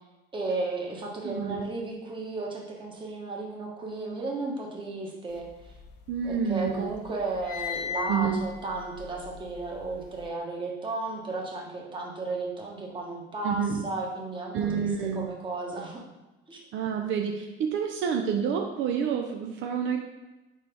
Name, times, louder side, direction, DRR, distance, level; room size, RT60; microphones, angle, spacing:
voice 1, 0.3-5.5 6.2-14.9 15.1-16.0 16.5-16.6, right 3 dB, 25° right, -1 dB, 1.3 m, -34 dB
voice 2, 1.2-1.7 6.1-6.9 8.1-8.4 13.4-13.8 14.5-15.3 16.7-20.0, right 7 dB, 65° right, 3 dB, 0.6 m, -28 dB
sound 1, 5.4-6.5 6.8-10.2, left 7 dB, 55° left, 0.6 m, -38 dB
4.4 x 4.1 x 5.2 m, 1.1 s
cardioid pair, 135°, 21 cm